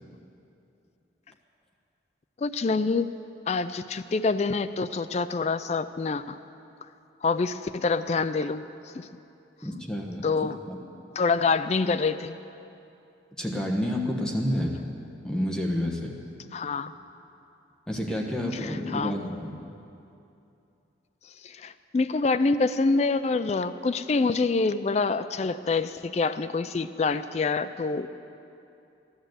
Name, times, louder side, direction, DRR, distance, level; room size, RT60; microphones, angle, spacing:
voice 1, 2.4-3.1 3.5-6.4 7.2-8.7 9.0-9.1 10.2-10.6 11.2-12.4 16.5-16.9 18.6-19.2 21.4-28.1, left 4 dB, 35° left, 12 dB, 0.3 m, -26 dB
voice 2, 9.6-10.3 10.7-10.8 13.4-14.8 15.2-16.1 17.9-19.6, equal, 5° left, -1 dB, 1.1 m, -29 dB
15.0 x 11.0 x 7.8 m, 2.7 s
head